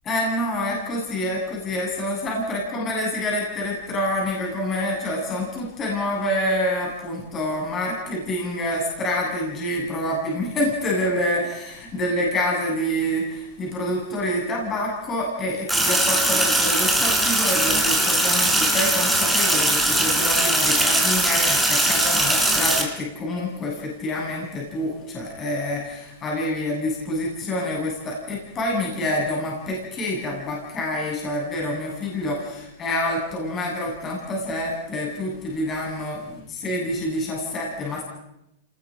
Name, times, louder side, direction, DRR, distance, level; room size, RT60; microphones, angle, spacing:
voice 1, 0.0-38.0, left 1 dB, 25° left, -3 dB, 7.8 m, -27 dB
Sink (filling or washing), 15.7-22.8, right 1 dB, ahead, 4.0 m, -20 dB
27.0 x 20.0 x 5.4 m, 0.85 s
hypercardioid pair, 135°, 0 cm